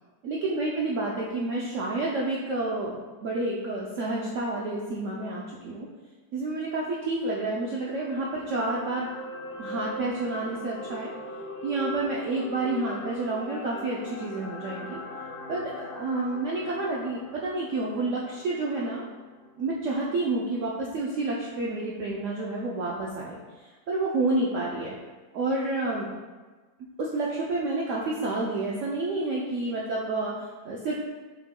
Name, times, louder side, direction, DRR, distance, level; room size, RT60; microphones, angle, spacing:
voice 1, 0.2-2.9 3.2-5.9 6.3-9.1 9.6-11.1 11.6-15.0 15.5-19.0 19.6-24.9 25.3-26.1 27.0-31.0, right 2 dB, 75° right, -4 dB, 0.7 m, -29 dB
sound 1, 7.7-20.0 20.3-20.5, left 2 dB, 80° left, 1.3 m, -41 dB
5.7 x 2.1 x 3.6 m, 1.3 s
omnidirectional pair, 1.8 m